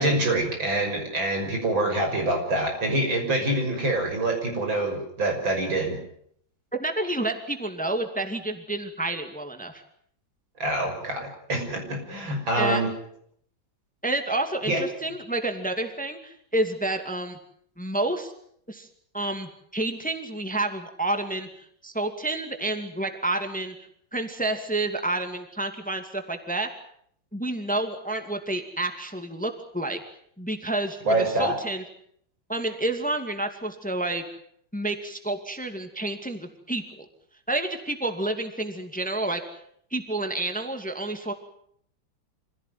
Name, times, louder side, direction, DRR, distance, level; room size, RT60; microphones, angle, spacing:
voice 1, 0.0-6.0 10.6-12.9 14.7-14.8 31.0-31.5, right 1 dB, 85° right, 3 dB, 7.0 m, -25 dB
voice 2, 6.8-9.8 12.5-12.8 14.0-17.4 17.8-18.3 18.7-18.9 19.1-23.7 24.1-26.7 27.3-30.0 30.4-31.8 32.5-34.2 34.7-37.1 37.5-39.4 39.9-41.3, right 2 dB, 5° left, 6 dB, 2.2 m, -29 dB
26.0 x 16.5 x 9.4 m, 0.67 s
omnidirectional pair, 2.1 m